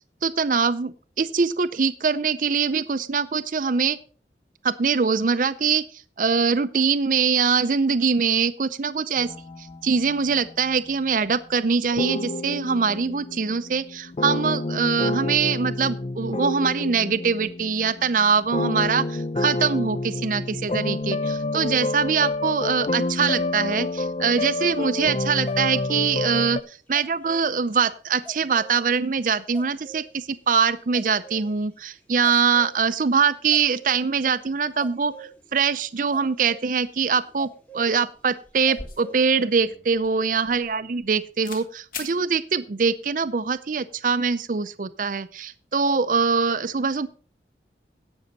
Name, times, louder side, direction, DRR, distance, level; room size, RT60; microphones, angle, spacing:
voice 1, 0.2-4.0 4.6-9.3 9.6-26.6 26.9-47.1, right 5 dB, 50° right, 12 dB, 0.5 m, -23 dB
sound 1, 9.2-10.7 11.9-26.6, left 2 dB, 35° left, 0.4 m, -29 dB
sound 2, 25.5-26.0 26.9-27.5 28.2-28.8 29.5-30.1 30.8-31.5 32.2-33.1 33.5-34.1 34.8-35.5 35.8-37.9 38.7-39.2, right 3 dB, 10° left, 1.2 m, -44 dB
sound 3, 38.4-41.1 41.4-41.7 41.9-42.2, left 3 dB, 50° left, 2.1 m, -40 dB
17.0 x 6.3 x 4.0 m, 0.39 s
head